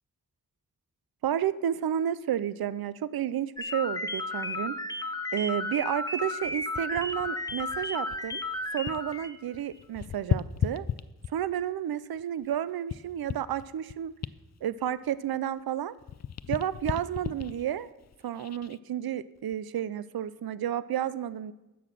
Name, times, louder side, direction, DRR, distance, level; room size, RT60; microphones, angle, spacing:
voice 1, 1.2-4.8 5.3-8.4 8.7-10.9 11.3-14.1 14.6-15.9 16.5-17.9 18.2-21.5, right 10 dB, 80° right, 16 dB, 0.5 m, -31 dB
sound 1, 3.6-9.3, left 2 dB, 10° left, 1.0 m, -33 dB
sound 2, 6.4-9.2 9.5-11.6 12.2-15.7 16.0-18.8 19.4-19.6, left 8 dB, 50° left, 0.5 m, -36 dB
11.5 x 7.9 x 6.6 m, 1.0 s
wide cardioid pair, 60°, 36 cm